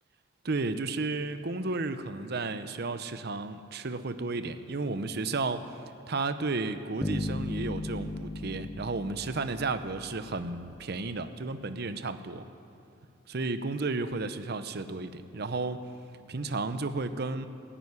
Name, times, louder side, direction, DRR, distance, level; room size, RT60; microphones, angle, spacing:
voice 1, 0.4-5.8 6.1-12.4 13.3-15.8 16.3-17.5, right 3 dB, 55° right, 11 dB, 0.7 m, -33 dB
sound 1, 7.0-10.4, left 1 dB, 15° left, 0.5 m, -36 dB
14.5 x 10.0 x 9.6 m, 2.6 s
head